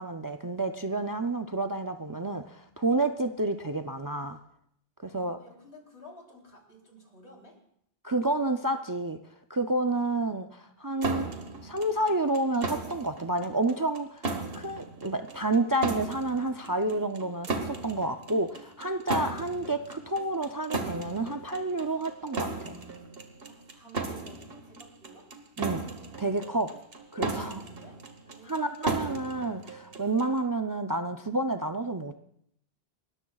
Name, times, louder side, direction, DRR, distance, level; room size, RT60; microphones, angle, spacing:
voice 1, 0.0-4.4 5.0-5.4 8.0-9.2 9.5-11.3 11.6-14.3 14.5-22.8 25.6-25.8 26.2-26.7 27.1-27.6 28.5-32.2, right 2 dB, 30° right, 7 dB, 0.4 m, -29 dB
voice 2, 5.1-7.6 23.4-25.3 27.4-29.0, equal, 85° left, -1 dB, 3.7 m, -53 dB
sound 1, 11.0-30.4, right 3 dB, 65° right, 1.5 m, -36 dB
29.0 x 13.5 x 2.3 m, 0.71 s
omnidirectional pair, 1.1 m